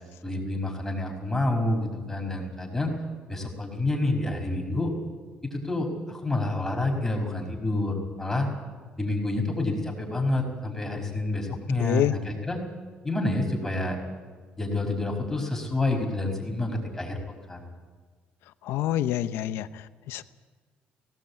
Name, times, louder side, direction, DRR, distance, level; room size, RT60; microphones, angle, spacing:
voice 1, 0.2-2.9 3.3-4.9 5.4-8.5 9.0-12.6 13.0-14.0 14.6-17.2 17.5-17.6, left 2 dB, 10° left, 1 dB, 5.3 m, -28 dB
voice 2, 11.8-12.1 18.6-20.2, left 13 dB, 85° left, 13 dB, 0.8 m, -27 dB
18.0 x 17.5 x 8.5 m, 1.5 s
cardioid pair, 95°, 4 cm